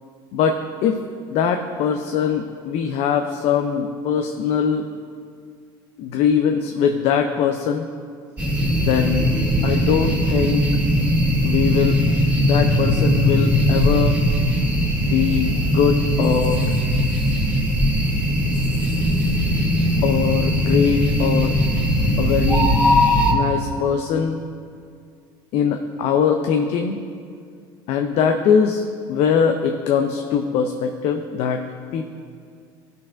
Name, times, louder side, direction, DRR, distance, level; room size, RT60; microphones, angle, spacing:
voice 1, 0.3-1.0 1.3-4.9 6.0-7.9 8.8-9.3 9.6-10.7 11.4-12.0 12.4-14.2 15.0-16.7 20.0-21.6 22.2-22.7 23.3-24.4 25.5-27.0 27.9-31.7 31.9-32.0, left 7 dB, 60° left, 5 dB, 0.6 m, -21 dB
sound 1, 8.4-23.3, equal, 15° right, 2.1 m, -19 dB
16.5 x 6.4 x 2.5 m, 2.2 s
supercardioid pair, 90°, 12 cm